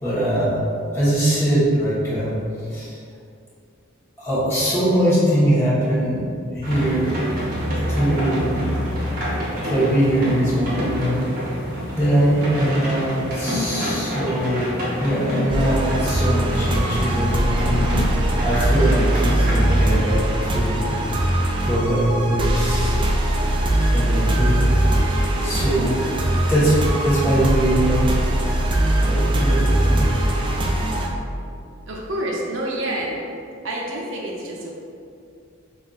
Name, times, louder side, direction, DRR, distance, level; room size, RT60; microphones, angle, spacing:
voice 1, 0.0-0.6 0.9-3.0 4.2-6.2 6.5-7.1 7.9-8.6 9.6-11.3 11.9-17.9 18.4-20.2 20.5-20.9 21.6-23.0 23.9-24.7 25.0-26.0 26.5-28.1 29.0-30.2, right 1 dB, 15° left, -11 dB, 1.2 m, -22 dB
sound 1, 6.6-19.8, equal, 45° right, 1.0 m, -27 dB
sound 2, 15.5-31.1, right 1 dB, 25° right, 0.3 m, -21 dB
voice 2, 31.9-33.2 33.6-34.7, right 1 dB, 65° right, -2 dB, 0.7 m, -28 dB
5.6 x 2.6 x 2.4 m, 2.4 s
head